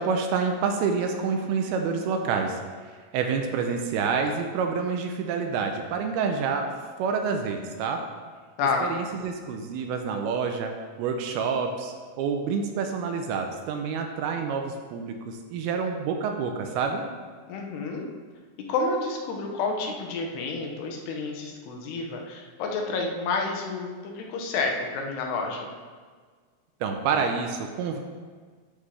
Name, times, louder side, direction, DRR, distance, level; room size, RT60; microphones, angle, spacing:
voice 1, 0.0-2.6 3.1-6.7 7.0-8.0 8.8-10.7 11.0-17.0 26.8-28.0, right 5 dB, 80° right, 4 dB, 2.4 m, -28 dB
voice 2, 8.6-8.9 17.5-18.1 18.7-25.7, left 3 dB, 80° left, 1 dB, 3.0 m, -29 dB
12.0 x 5.5 x 3.3 m, 1.6 s
omnidirectional pair, 4.7 m